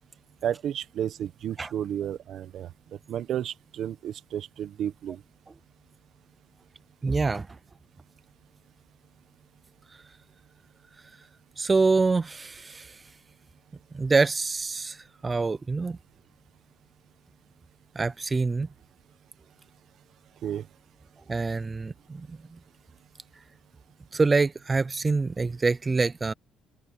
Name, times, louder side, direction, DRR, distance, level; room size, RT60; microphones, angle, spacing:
voice 1, 0.4-2.7 3.1-5.2 20.4-20.7, right 10 dB, 60° right, 1.1 m, -32 dB
voice 2, 7.0-7.5 11.6-13.0 13.9-16.0 18.0-18.7 21.3-22.6 24.1-26.3, right 4 dB, 20° right, 0.4 m, -26 dB
cardioid pair, 115°, 0 cm